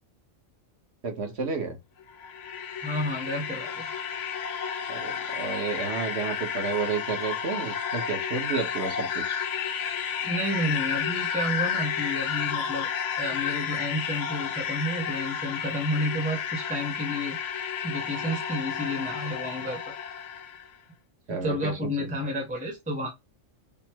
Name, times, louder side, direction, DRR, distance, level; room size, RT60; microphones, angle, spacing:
voice 1, 1.0-1.8 4.9-9.4 21.3-22.1, right 5 dB, 55° right, 1.2 m, -31 dB
sound 1, 2.0-20.7, left 7 dB, 70° left, 0.9 m, -31 dB
voice 2, 2.8-3.9 10.2-12.9 13.2-17.4 17.8-19.9 21.4-23.1, equal, 5° right, 0.9 m, -31 dB
3.7 x 2.1 x 4.4 m
omnidirectional pair, 1.4 m